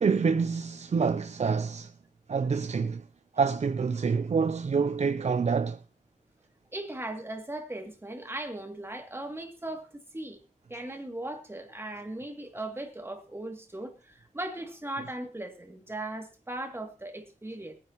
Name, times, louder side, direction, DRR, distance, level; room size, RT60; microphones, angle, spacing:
voice 1, 0.0-1.9 2.3-3.0 3.4-5.8, right 5 dB, 60° right, 0.6 m, -27 dB
voice 2, 6.7-10.4 10.7-17.7, right 1 dB, 20° right, 2.5 m, -38 dB
21.0 x 10.0 x 3.0 m
wide cardioid pair, 105°, 13 cm